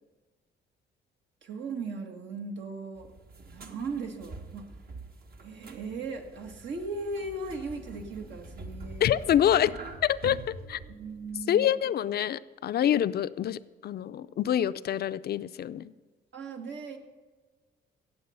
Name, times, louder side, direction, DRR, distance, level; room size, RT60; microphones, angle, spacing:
voice 1, 1.4-3.1 3.5-4.7 5.4-9.1 10.9-11.9 16.3-17.0, right 3 dB, 65° right, 4 dB, 1.7 m, -37 dB
sound 1, 3.0-11.4, right 3 dB, 50° right, 1.4 m, -45 dB
voice 2, 9.0-9.7 10.0-10.4 10.7-10.8 11.5-15.9, left 10 dB, 55° left, 14 dB, 0.5 m, -26 dB
16.5 x 7.5 x 5.6 m, 1.4 s
cardioid pair, 90°, 20 cm